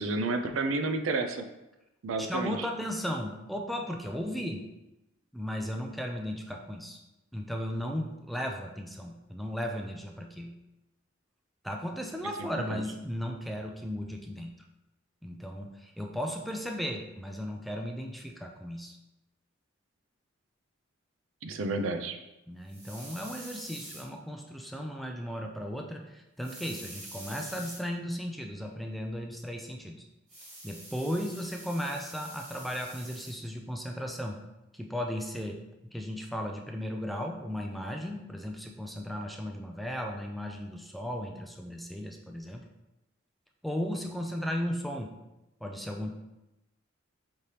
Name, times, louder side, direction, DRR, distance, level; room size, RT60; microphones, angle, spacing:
voice 1, 0.0-1.4 2.0-2.7 12.7-12.8 21.4-22.2, right 3 dB, 85° right, 7 dB, 0.4 m, -30 dB
voice 2, 2.2-4.7 5.3-7.0 7.3-10.6 11.6-14.5 15.2-19.0 22.5-30.0 30.6-34.4 34.7-35.6 35.9-42.6 43.6-45.1 45.6-46.1, equal, ahead, 2 dB, 0.3 m, -36 dB
sound 1, 22.7-24.0 26.4-27.8 30.3-33.3, right 1 dB, 35° right, 1.5 m, -46 dB
5.2 x 3.2 x 2.8 m, 0.95 s
head